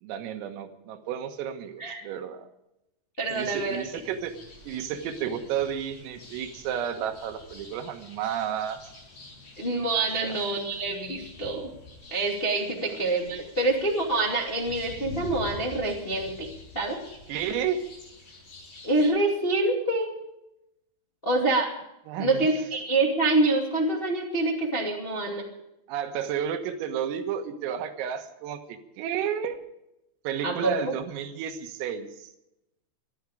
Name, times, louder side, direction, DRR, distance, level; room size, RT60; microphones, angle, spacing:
voice 1, 0.0-2.5 3.3-4.4 4.6-8.8 10.2-10.4 17.3-17.9 22.1-22.5 25.9-29.6 30.3-32.3, right 8 dB, 85° right, 6 dB, 4.1 m, -32 dB
sound 1, 3.2-19.1, left 3 dB, 50° left, 9.0 m, -46 dB
voice 2, 3.2-3.8 9.6-11.7 12.1-16.5 16.7-17.0 18.8-20.1 21.2-21.7 22.2-25.5 30.4-30.9, right 2 dB, 30° left, -1 dB, 0.9 m, -26 dB
21.5 x 13.0 x 5.0 m, 0.86 s
omnidirectional pair, 5.8 m